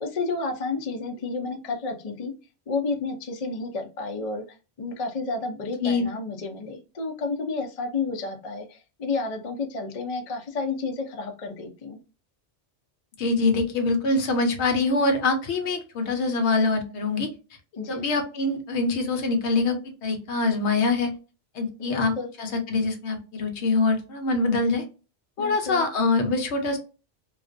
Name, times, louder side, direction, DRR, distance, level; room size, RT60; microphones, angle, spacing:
voice 1, 0.0-2.3 2.7-4.4 4.8-12.0 17.8-18.0 21.8-22.3 25.4-25.9, left 3 dB, 50° left, 3 dB, 0.4 m, -31 dB
voice 2, 13.2-17.3 17.9-21.1 21.5-24.8 25.4-26.8, left 3 dB, 70° left, 5 dB, 0.9 m, -24 dB
2.3 x 2.1 x 2.5 m, 0.32 s
omnidirectional pair, 1.2 m